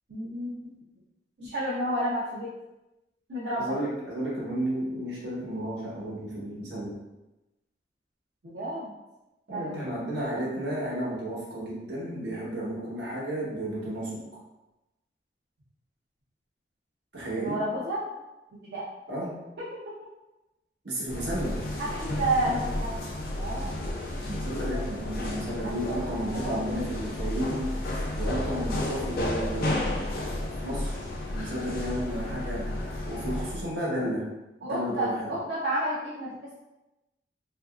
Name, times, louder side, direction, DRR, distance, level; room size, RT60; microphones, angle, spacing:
voice 1, 0.1-0.7 1.4-2.5 3.3-3.7 8.4-8.9 9.5-9.9 17.3-18.0 18.5-18.8 21.8-23.1 23.3-23.8 25.6-26.5 29.6-30.0 34.6-36.5, right 1 dB, 65° right, -8 dB, 0.5 m, -31 dB
voice 2, 3.6-7.0 9.5-14.2 17.1-17.6 19.1-19.4 20.8-21.6 24.2-27.7 28.1-30.2 30.6-31.0 31.3-32.7 33.1-34.2 34.6-35.4, right 1 dB, 85° right, -6 dB, 1.1 m, -32 dB
sound 1, 21.1-33.7, left 1 dB, 55° left, 0.5 m, -32 dB
2.9 x 2.5 x 2.3 m, 1.0 s
head